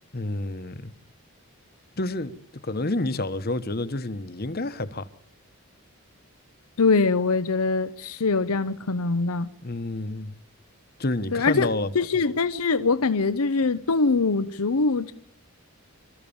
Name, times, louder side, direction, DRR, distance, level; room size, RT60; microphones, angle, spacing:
voice 1, 0.1-0.9 2.0-2.4 2.6-5.1 9.6-10.3 11.0-11.9, left 2 dB, 45° left, 1.1 m, -29 dB
voice 2, 6.8-9.5 11.3-15.1, left 4 dB, 80° left, 0.8 m, -23 dB
28.0 x 14.0 x 7.2 m
head